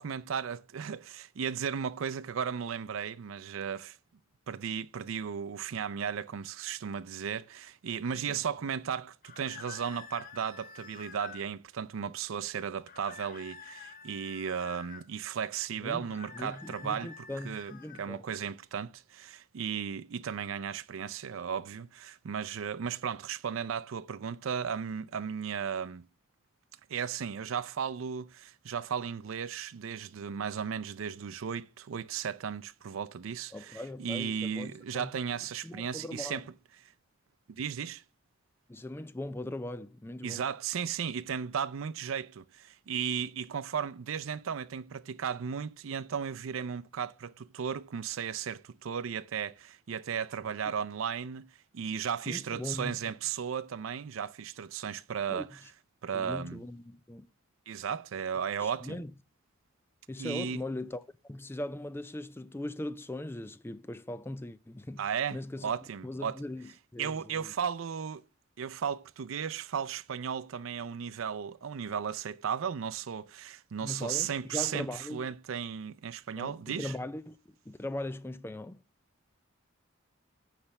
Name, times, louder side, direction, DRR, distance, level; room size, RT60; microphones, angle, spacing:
voice 1, 0.0-4.0 4.5-26.1 26.9-36.5 37.5-38.0 40.2-51.5 51.7-55.6 56.0-56.6 57.7-59.0 60.2-60.6 65.0-66.4 67.0-68.2 68.6-76.9, right 7 dB, 80° right, 0.5 m, -35 dB
sound 1, 9.2-11.5 12.9-15.1 16.0-18.1, left 6 dB, 40° left, 0.7 m, -49 dB
voice 2, 15.8-18.3 33.5-35.1 35.6-36.4 38.7-40.4 52.3-53.0 55.3-55.5 56.1-57.3 58.6-59.1 60.1-65.1 65.3-65.7 66.0-67.5 73.8-75.2 76.4-77.4 77.7-78.8, left 1 dB, 10° left, 0.4 m, -40 dB
9.8 x 3.3 x 7.0 m
head